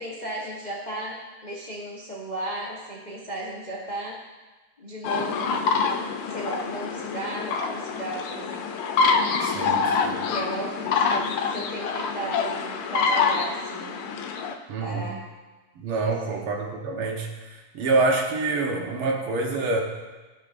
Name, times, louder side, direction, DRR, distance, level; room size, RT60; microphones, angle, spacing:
voice 1, 0.0-4.2 4.8-5.7 6.3-8.7 9.4-14.0 14.8-15.2 16.0-16.5, right 1 dB, 30° left, -5 dB, 0.8 m, -35 dB
sound 1, 5.0-14.5, left 5 dB, 90° left, 1.6 m, -26 dB
voice 2, 9.4-10.3 14.7-15.1 15.8-17.3 17.7-19.8, right 3 dB, 85° right, 1 dB, 2.0 m, -26 dB
14.5 x 5.8 x 2.5 m, 1.2 s
omnidirectional pair, 2.4 m